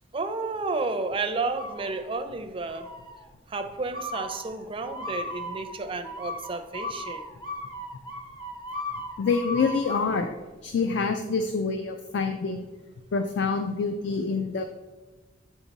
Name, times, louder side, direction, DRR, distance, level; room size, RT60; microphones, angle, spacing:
voice 1, 0.1-2.9 3.5-7.3, right 3 dB, 30° right, 7 dB, 0.4 m, -31 dB
sound 1, 1.5-2.3 2.7-3.2 3.9-10.2, left 1 dB, 20° left, 0.9 m, -37 dB
voice 2, 9.2-10.4 10.6-12.6 13.1-14.6, left 4 dB, 65° left, 6 dB, 0.4 m, -26 dB
7.4 x 3.6 x 4.0 m, 1.2 s
head